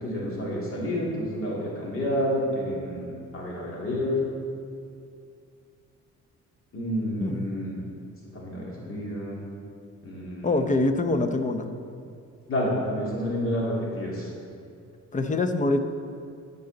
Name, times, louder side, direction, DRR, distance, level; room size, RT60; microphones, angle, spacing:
voice 1, 0.0-4.2 6.7-7.8 8.3-9.4 10.0-10.6 12.5-14.3, equal, 45° left, -5 dB, 2.3 m, -29 dB
voice 2, 10.4-11.7 15.1-15.8, left 2 dB, 25° left, 7 dB, 0.7 m, -24 dB
14.0 x 5.5 x 3.9 m, 2.4 s
cardioid pair, 90°, 30 cm